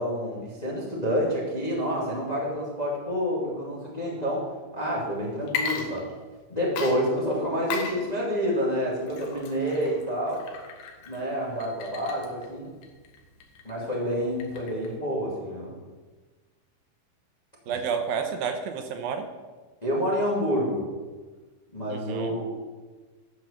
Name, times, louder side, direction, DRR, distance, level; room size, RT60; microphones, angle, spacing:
voice 1, 0.0-4.5 4.7-6.1 6.5-10.4 11.0-12.7 13.6-15.7 17.7-17.8 19.8-20.9 21.7-22.5, equal, 15° left, -4 dB, 1.7 m, -28 dB
Water / Liquid, 5.4-6.4 6.8-15.0, left 5 dB, 90° left, 3.2 m, -37 dB
voice 2, 17.7-19.3 21.9-22.4, right 6 dB, 80° right, 6 dB, 2.6 m, -30 dB
12.0 x 6.3 x 7.1 m, 1.3 s
omnidirectional pair, 4.3 m